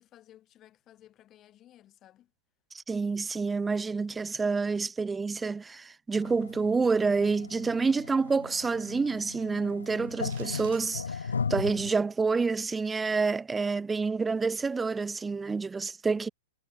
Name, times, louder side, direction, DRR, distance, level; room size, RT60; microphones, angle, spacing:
voice 1, 0.0-2.3, left 12 dB, 25° left, 4.7 m, -57 dB
voice 2, 2.7-16.3, right 4 dB, 10° right, 0.7 m, -28 dB
sound 1, 6.1-12.0, left 5 dB, 70° left, 0.5 m, -37 dB
sound 2, 10.2-10.9, right 14 dB, 50° right, 2.7 m, -50 dB
figure-of-eight pair, 105°, 0 cm